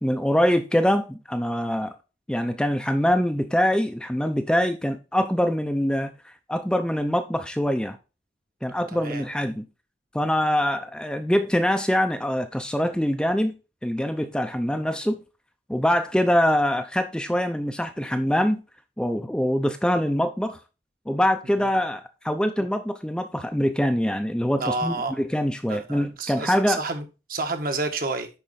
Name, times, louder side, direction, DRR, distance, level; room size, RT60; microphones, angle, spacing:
voice 1, 0.0-1.9 2.3-8.0 8.6-9.7 10.1-13.6 13.8-15.2 15.7-18.6 19.0-20.6 21.1-26.8, equal, 5° left, 0.5 m, -24 dB
voice 2, 8.7-9.2 24.6-25.2 25.7-28.3, right 3 dB, 50° right, 1.3 m, -30 dB
10.0 x 4.3 x 4.1 m
head